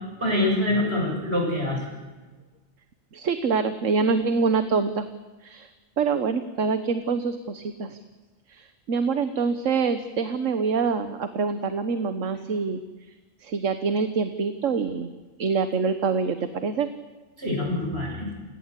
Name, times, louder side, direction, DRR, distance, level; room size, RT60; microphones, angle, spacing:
voice 1, 0.2-1.8 17.4-18.3, left 1 dB, 45° right, 0 dB, 7.6 m, -25 dB
voice 2, 3.1-5.1 5.4-5.7 6.0-8.0 8.5-12.8 13.4-15.1 15.4-16.9, right 5 dB, 65° right, 10 dB, 1.5 m, -25 dB
29.5 x 18.0 x 8.3 m, 1.3 s
omnidirectional pair, 1.4 m